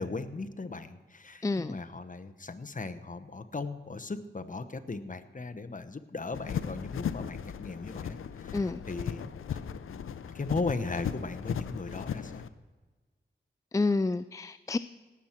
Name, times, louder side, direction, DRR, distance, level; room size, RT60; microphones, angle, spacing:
voice 1, 0.0-9.2 9.9-12.4, left 3 dB, 40° left, 9 dB, 1.0 m, -37 dB
voice 2, 1.4-1.8 8.5-8.8 13.7-14.8, left 3 dB, 15° left, 13 dB, 0.3 m, -29 dB
sound 1, 6.3-12.5, left 8 dB, 90° left, 0.5 m, -37 dB
18.0 x 7.3 x 4.5 m, 1.3 s
cardioid pair, 40°, 21 cm